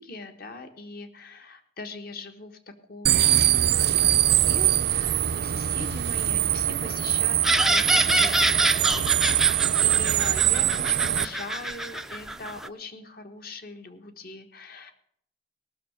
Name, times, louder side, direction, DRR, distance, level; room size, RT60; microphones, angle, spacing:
voice 1, 0.0-8.6 9.4-14.9, left 3 dB, 55° left, 7 dB, 1.4 m, -41 dB
sound 1, 3.1-11.3, right 12 dB, 60° right, 0.5 m, -23 dB
sound 2, 7.4-12.7, right 1 dB, ahead, 0.4 m, -26 dB
18.0 x 6.5 x 6.6 m, 0.65 s
head